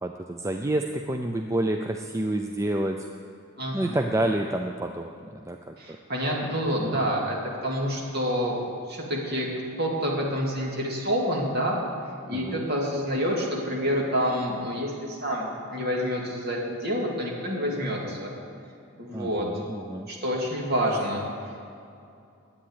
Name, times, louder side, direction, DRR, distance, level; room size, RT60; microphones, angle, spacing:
voice 1, 0.0-3.0 3.7-5.7 12.3-12.7 19.1-20.1, right 1 dB, 15° right, 4 dB, 0.4 m, -29 dB
voice 2, 3.6-4.0 5.8-7.4 7.6-8.6 8.9-9.5 9.8-11.8 12.3-18.3 19.0-19.5 20.1-21.2, equal, 45° right, -2 dB, 2.5 m, -28 dB
10.5 x 8.6 x 9.9 m, 2.5 s
head